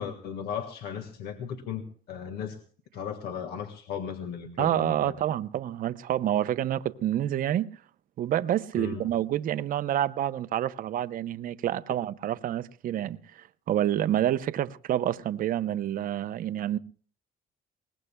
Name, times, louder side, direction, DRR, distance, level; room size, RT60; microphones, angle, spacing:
voice 1, 0.0-2.6 2.9-5.1 8.8-9.0, left 7 dB, 70° left, 1.7 m, -36 dB
voice 2, 4.6-7.7 8.2-16.8, right 11 dB, 55° right, 0.7 m, -28 dB
22.5 x 19.5 x 2.2 m
cardioid pair, 110°, 17 cm